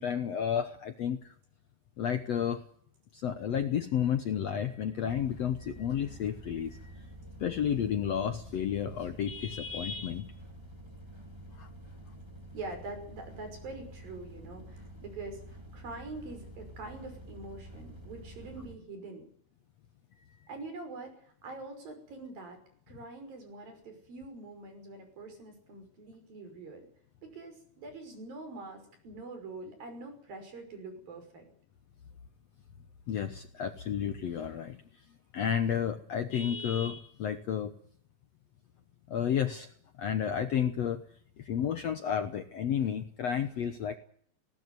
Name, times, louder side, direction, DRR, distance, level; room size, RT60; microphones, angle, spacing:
voice 1, 0.0-1.3 2.0-2.6 3.1-7.0 7.4-10.3 11.5-11.7 33.1-34.8 35.3-37.7 39.1-39.7 40.0-41.0 41.4-44.0, left 8 dB, 65° left, 9 dB, 1.7 m, -31 dB
sound 1, 5.0-18.8, right 1 dB, 5° right, 3.2 m, -48 dB
voice 2, 12.5-19.2 20.5-22.6 22.9-26.9 27.2-31.5, right 3 dB, 70° right, 6 dB, 7.5 m, -44 dB
19.0 x 18.5 x 9.5 m, 0.62 s
omnidirectional pair, 4.2 m